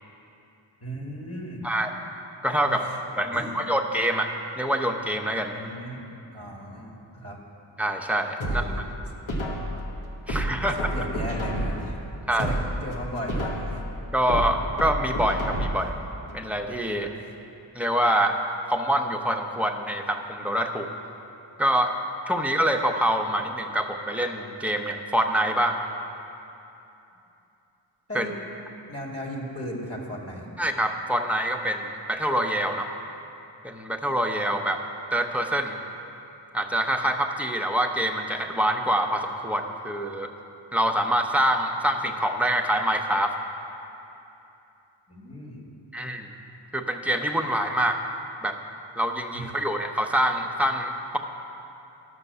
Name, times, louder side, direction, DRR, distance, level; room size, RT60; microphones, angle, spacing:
voice 1, 0.8-1.6 2.6-3.0 3.3-3.6 5.5-7.4 8.4-8.8 10.6-13.8 17.1-17.3 28.1-28.3 28.9-30.5 45.1-45.7 49.3-49.6, equal, 30° left, -1 dB, 2.1 m, -36 dB
voice 2, 2.4-2.8 3.2-5.5 7.8-8.6 10.3-10.8 12.3-12.5 14.1-15.9 16.3-17.1 17.7-18.4 18.7-20.9 21.6-21.9 22.3-25.8 28.1-28.3 30.6-32.9 33.6-34.8 35.1-35.8 36.5-40.3 40.7-43.3 45.9-46.3 46.7-48.0 48.4-48.6 49.0-51.2, right 1 dB, 5° right, 3 dB, 0.9 m, -25 dB
sound 1, 8.4-9.8 10.3-11.9 12.3-13.8 14.3-15.9 16.3-16.4, right 1 dB, 75° left, 1.6 m, -29 dB
12.5 x 6.0 x 6.8 m, 2.8 s
cardioid pair, 40°, 46 cm